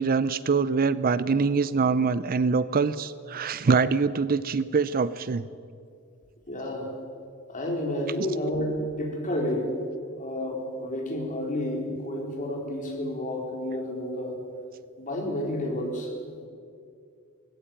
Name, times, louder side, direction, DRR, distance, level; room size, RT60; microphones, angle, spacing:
voice 1, 0.0-5.4, right 5 dB, 40° right, 16 dB, 0.5 m, -24 dB
voice 2, 6.5-6.9 7.5-9.7 10.2-14.4 15.0-16.1, left 1 dB, 35° left, 0 dB, 4.3 m, -30 dB
19.0 x 16.0 x 9.1 m, 2.3 s
head